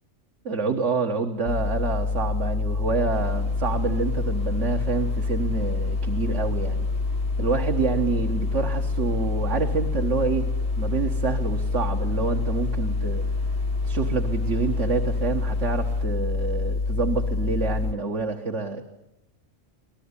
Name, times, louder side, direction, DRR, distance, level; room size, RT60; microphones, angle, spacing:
voice 1, 0.4-6.9 7.4-10.5 10.8-13.2 13.8-18.8, right 4 dB, 65° right, 3 dB, 1.7 m, -27 dB
sound 1, 1.5-17.9, left 4 dB, 65° left, 1.4 m, -26 dB
sound 2, 3.1-16.0, right 3 dB, 50° right, 1.3 m, -41 dB
25.5 x 18.5 x 9.8 m, 0.88 s
omnidirectional pair, 1.3 m